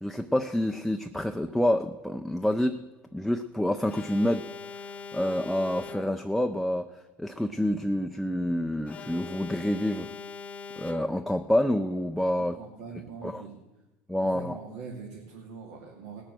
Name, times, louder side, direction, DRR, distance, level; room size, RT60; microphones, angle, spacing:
voice 1, 0.0-2.8 3.1-4.4 5.1-6.9 7.2-10.1 10.8-12.6 13.2-13.4 14.1-14.6, left 1 dB, ahead, 6 dB, 0.4 m, -27 dB
Alarm, 3.9-6.4 8.9-11.4, left 6 dB, 30° left, 0.8 m, -42 dB
voice 2, 12.4-13.5 14.2-16.2, right 5 dB, 85° right, -2 dB, 2.5 m, -42 dB
19.0 x 6.7 x 7.6 m, 1.1 s
cardioid pair, 135°, 5 cm